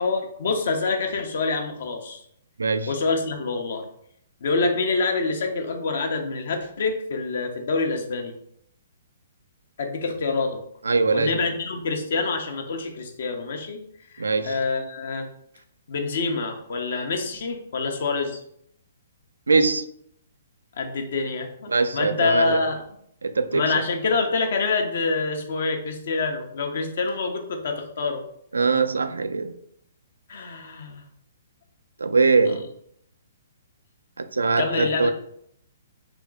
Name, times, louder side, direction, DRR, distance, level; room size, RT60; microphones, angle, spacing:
voice 1, 0.0-2.2 2.9-3.8 4.4-8.3 9.8-10.6 11.1-13.8 14.1-15.3 15.9-18.4 20.8-22.8 23.5-28.2 30.3-31.0 34.6-35.1, left 4 dB, 60° left, 0.8 m, -26 dB
voice 2, 2.6-2.9 10.8-11.3 14.2-14.6 19.5-19.8 21.7-22.6 23.2-23.6 28.5-29.5 32.0-32.7 34.2-35.1, right 4 dB, 80° right, 0.4 m, -22 dB
3.6 x 3.1 x 3.6 m
figure-of-eight pair, 125°, 0 cm